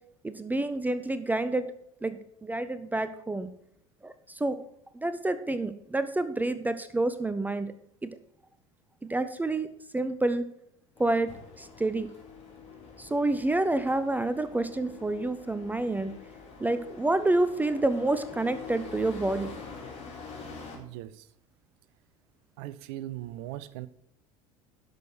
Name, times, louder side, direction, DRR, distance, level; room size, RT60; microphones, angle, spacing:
voice 1, 0.2-1.7 2.0-3.5 4.0-4.6 4.9-7.7 8.0-8.1 9.1-9.7 9.9-10.5 11.0-11.3 11.6-12.1 13.0-16.1 16.6-19.5, right 2 dB, 10° right, 12 dB, 0.6 m, -28 dB
sound 1, 11.0-20.8, left 5 dB, 35° left, 4.2 m, -45 dB
voice 2, 20.7-21.3 22.6-23.9, right 14 dB, 55° right, 15 dB, 0.6 m, -39 dB
11.0 x 6.4 x 4.7 m, 0.74 s
figure-of-eight pair, 70°, 18 cm